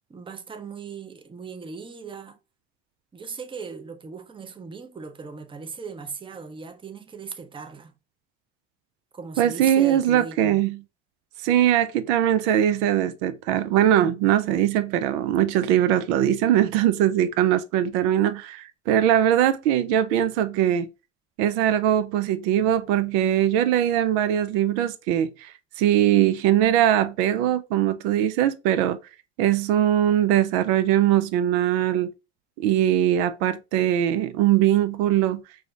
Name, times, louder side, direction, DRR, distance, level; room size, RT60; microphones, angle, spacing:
voice 1, 0.1-2.4 3.1-7.9 9.1-10.6, right 5 dB, 15° right, 0.5 m, -38 dB
voice 2, 9.4-10.8 11.4-20.9 21.4-25.5 25.8-29.0 29.4-32.1 32.6-35.4, right 11 dB, 80° right, 0.5 m, -21 dB
4.7 x 2.1 x 2.3 m
supercardioid pair, 75°, 34 cm